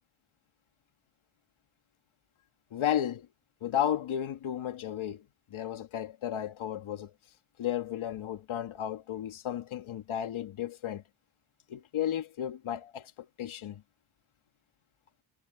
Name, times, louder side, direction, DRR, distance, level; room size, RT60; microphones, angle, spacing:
voice 1, 2.7-3.3 3.6-5.2 5.5-7.1 7.6-11.0 11.7-13.8, left 10 dB, 75° left, 2.4 m, -33 dB
cardioid pair, 90°, 49 cm